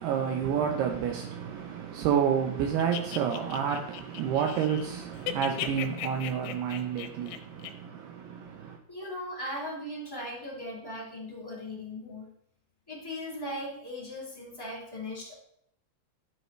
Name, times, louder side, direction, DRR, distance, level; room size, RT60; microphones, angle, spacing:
voice 1, 0.0-8.8, right 8 dB, 85° right, 2.3 m, -29 dB
sound 1, 2.8-4.9 5.1-7.7, left 12 dB, 85° left, 3.2 m, -37 dB
voice 2, 8.9-12.3 12.9-15.3, left 1 dB, 5° left, 2.0 m, -38 dB
12.5 x 5.6 x 4.4 m
omnidirectional pair, 5.7 m